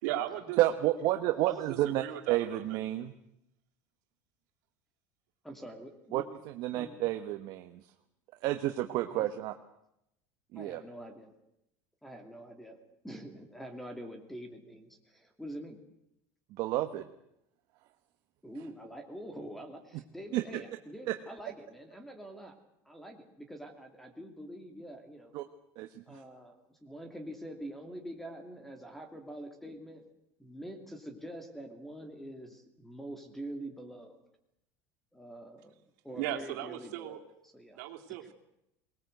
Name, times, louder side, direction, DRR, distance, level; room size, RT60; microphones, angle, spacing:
voice 1, 0.0-0.6 1.4-2.8 36.1-37.2 37.7-38.3, right 13 dB, 80° right, 3 dB, 2.8 m, -37 dB
voice 2, 0.6-3.1 6.1-7.9 8.4-9.5 10.5-10.8 16.5-17.1 20.3-20.6 21.1-21.2 25.3-25.4 25.8-26.2, right 14 dB, 50° right, 7 dB, 1.2 m, -31 dB
voice 3, 5.4-6.2 6.7-6.9 9.1-9.3 10.5-11.3 12.0-12.8 13.0-15.8 18.4-22.5 22.8-25.3 26.1-30.0 30.4-34.2 35.1-35.7 36.0-37.2 37.5-37.8, right 1 dB, 5° left, 6 dB, 2.7 m, -45 dB
23.0 x 20.0 x 8.0 m, 0.82 s
cardioid pair, 160°, 9 cm